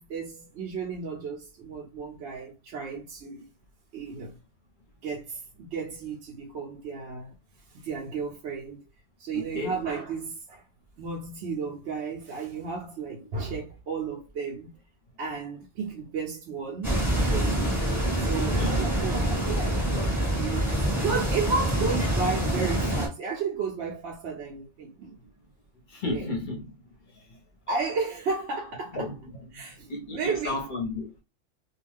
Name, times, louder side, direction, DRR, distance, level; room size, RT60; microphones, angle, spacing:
voice 1, 0.0-3.5 3.9-4.4 5.0-7.3 7.7-8.9 9.2-10.6 11.0-14.7 15.2-17.0 17.3-17.8 18.2-25.2 26.0-26.3 27.7-29.1 29.5-30.6, right 5 dB, 60° right, 0.8 m, -33 dB
voice 2, 9.3-9.7 18.3-18.8 20.7-20.8 25.9-26.6 28.9-29.1 29.9-31.2, left 2 dB, 40° left, 0.9 m, -33 dB
sound 1, 16.8-23.1, right 1 dB, ahead, 1.0 m, -26 dB
2.4 x 2.3 x 3.3 m
omnidirectional pair, 1.4 m